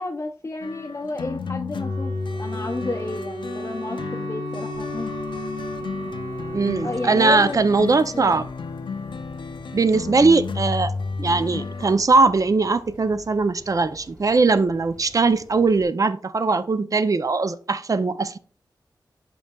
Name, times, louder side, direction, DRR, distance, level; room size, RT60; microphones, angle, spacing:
voice 1, 0.0-2.1 2.4-5.1 6.8-7.6 8.1-8.4, left 2 dB, 35° left, 1 dB, 0.6 m, -31 dB
sound 1, 0.6-11.9, left 4 dB, 85° left, 0.5 m, -32 dB
Wind instrument woodwind instrument, 1.8-7.5, right 2 dB, 65° right, 1.2 m, -34 dB
sound 2, 4.7-15.8, right 1 dB, 20° right, 2.0 m, -48 dB
voice 2, 6.5-8.5 9.7-10.9 11.2-18.4, right 3 dB, 45° right, 12 dB, 0.5 m, -20 dB
11.0 x 3.8 x 2.3 m, 0.39 s
cardioid pair, 55°, 8 cm